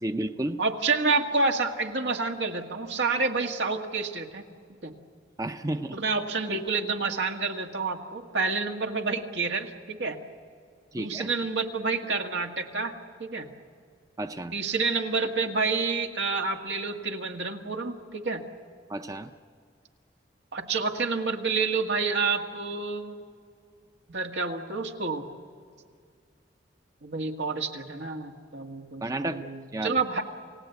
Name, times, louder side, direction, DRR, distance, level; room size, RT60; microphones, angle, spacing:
voice 1, 0.0-0.6 5.4-6.0 10.9-11.3 14.2-14.5 18.9-19.3 29.0-29.4 29.7-29.9, right 1 dB, 20° right, 8 dB, 0.6 m, -31 dB
voice 2, 0.6-4.4 4.8-4.9 5.9-10.2 10.9-12.9 13.2-13.5 14.5-18.4 20.5-23.2 24.1-25.2 27.0-30.2, right 4 dB, 80° right, 3 dB, 1.9 m, -29 dB
29.0 x 17.0 x 8.1 m, 2.2 s
head